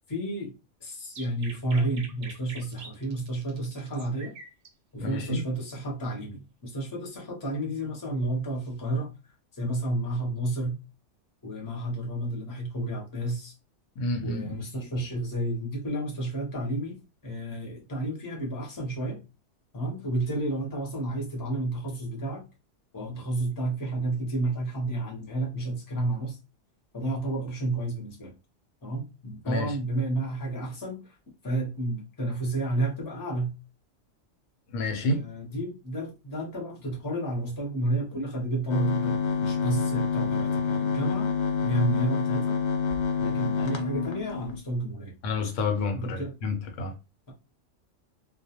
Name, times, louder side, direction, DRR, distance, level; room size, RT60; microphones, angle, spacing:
voice 1, 0.1-4.3 4.9-9.1 9.5-10.8 11.4-13.5 14.2-19.2 19.7-22.4 22.9-26.4 26.9-28.3 28.8-31.2 31.4-33.5 35.0-41.3 41.6-42.6 43.2-45.1 45.9-46.3, right 1 dB, 20° left, 0.6 m, -31 dB
sound 1, 1.1-4.7, right 4 dB, 60° right, 0.7 m, -44 dB
voice 2, 5.0-5.4 14.0-14.6 29.5-29.7 34.7-35.2 45.2-46.9, left 2 dB, 80° left, 1.0 m, -29 dB
sound 2, 38.7-44.6, left 5 dB, 60° left, 0.4 m, -27 dB
2.3 x 2.0 x 2.8 m
omnidirectional pair, 1.3 m